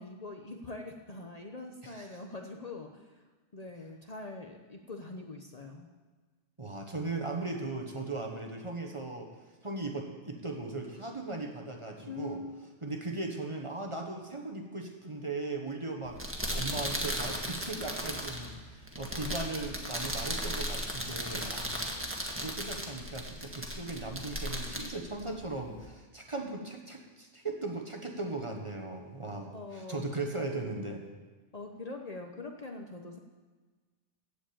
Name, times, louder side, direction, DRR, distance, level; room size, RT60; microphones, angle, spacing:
voice 1, 0.0-3.2 3.5-5.9 12.1-12.5 21.8-22.2 29.5-30.1 31.5-33.2, left 3 dB, 40° left, 3 dB, 0.9 m, -43 dB
voice 2, 1.8-2.2 6.6-9.3 9.6-12.4 12.8-16.2 16.5-21.7 22.3-31.0, right 2 dB, 25° right, 2 dB, 1.2 m, -38 dB
sound 1, 16.0-25.9, equal, 10° right, 1.5 m, -36 dB
15.0 x 5.0 x 8.6 m, 1.4 s
omnidirectional pair, 1.2 m